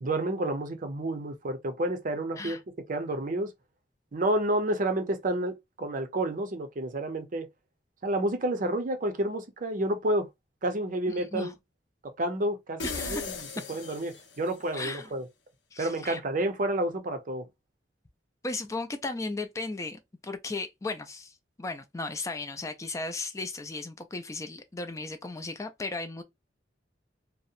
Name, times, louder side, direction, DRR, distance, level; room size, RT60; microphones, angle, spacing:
voice 1, 0.0-2.6 2.9-3.5 4.1-7.5 8.0-10.3 10.6-11.5 12.0-13.3 13.7-15.3 15.8-17.5, right 1 dB, 50° right, 0.6 m, -30 dB
voice 2, 11.2-11.5 12.8-13.4 14.7-15.1 15.7-16.2 18.4-26.2, left 3 dB, 15° left, 0.4 m, -36 dB
sound 1, 12.8-14.6, left 4 dB, 75° left, 0.7 m, -37 dB
2.7 x 2.1 x 2.4 m
head